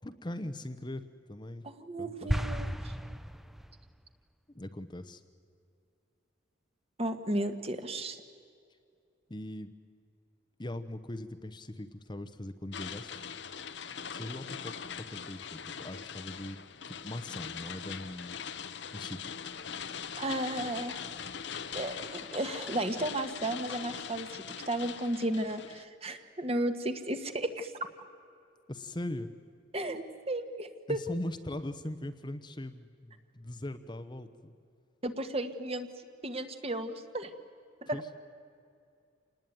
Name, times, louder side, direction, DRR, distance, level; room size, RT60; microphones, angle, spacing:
voice 1, 0.0-1.0 1.3-1.7 2.0-2.4 4.5-5.2 9.3-9.7 10.6-13.2 14.1-16.6 16.9-19.2 28.7-29.3 30.9-34.5 37.9-38.1, left 1 dB, 25° left, 9 dB, 0.9 m, -40 dB
voice 2, 1.6-2.9 7.0-8.2 20.2-21.0 21.7-27.7 29.7-31.0 35.0-35.9 36.2-37.3 37.9-38.0, right 1 dB, 30° right, 8 dB, 1.5 m, -34 dB
sound 1, 2.3-3.9, equal, ahead, 0.5 m, -34 dB
sound 2, 12.7-25.8, left 7 dB, 65° left, 1.0 m, -41 dB
27.5 x 19.5 x 9.3 m, 2.4 s
head